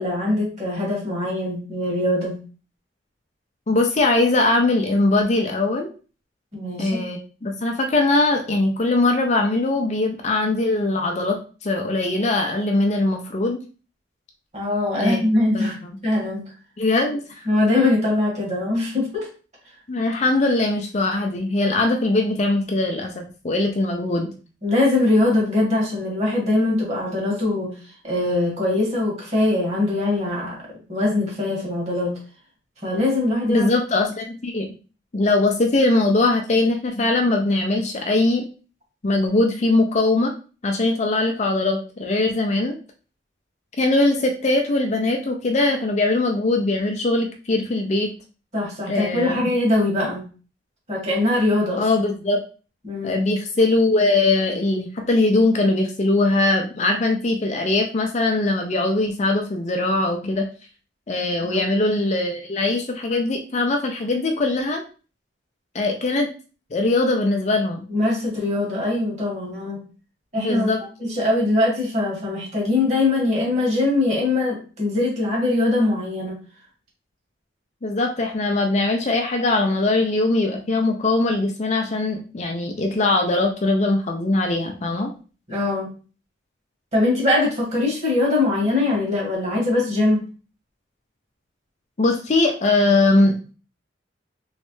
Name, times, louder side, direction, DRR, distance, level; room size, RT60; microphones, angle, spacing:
voice 1, 0.0-2.4 6.5-7.0 14.5-16.4 17.5-19.3 24.6-27.7 28.0-30.6 30.9-32.2 32.8-33.7 48.5-50.3 50.9-51.9 52.8-53.2 61.5-61.7 67.9-69.8 70.3-70.7 71.0-76.4 85.5-85.9 86.9-90.2, left 2 dB, 35° right, -2 dB, 1.8 m, -22 dB
voice 2, 3.7-5.9 6.8-11.4 11.6-13.6 15.0-15.2 15.5-15.9 16.8-17.5 19.9-24.3 33.5-34.7 35.1-38.4 39.0-40.3 40.6-42.8 43.8-48.1 48.9-49.5 51.8-52.4 53.0-60.5 61.1-64.8 65.7-66.3 66.7-67.9 70.4-70.8 77.8-85.1 92.0-93.4, left 2 dB, 35° left, 3 dB, 0.5 m, -21 dB
3.1 x 3.1 x 3.1 m, 0.36 s
head